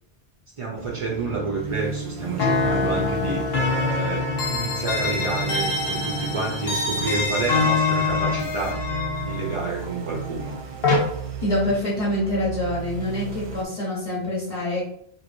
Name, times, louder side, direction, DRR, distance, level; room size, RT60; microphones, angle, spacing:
voice 1, 0.6-8.8 9.2-10.6, right 3 dB, 60° right, -2 dB, 0.3 m, -29 dB
sound 1, 0.8-13.6, right 4 dB, 90° right, 0.8 m, -35 dB
sound 2, 2.4-11.0, left 3 dB, 70° left, 1.0 m, -25 dB
voice 2, 11.4-14.8, left 1 dB, 35° left, -9 dB, 1.0 m, -25 dB
3.0 x 2.6 x 2.5 m, 0.68 s
omnidirectional pair, 1.1 m